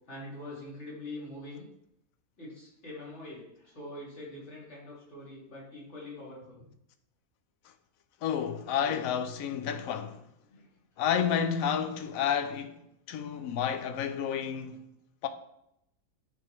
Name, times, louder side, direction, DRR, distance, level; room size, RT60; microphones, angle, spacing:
voice 1, 0.1-1.7 2.4-6.6 10.5-10.7, left 1 dB, 50° left, 2.5 m, -44 dB
voice 2, 8.2-10.2 11.0-14.8 15.2-15.3, left 8 dB, 75° left, 1.0 m, -30 dB
9.1 x 3.4 x 3.1 m
omnidirectional pair, 1.6 m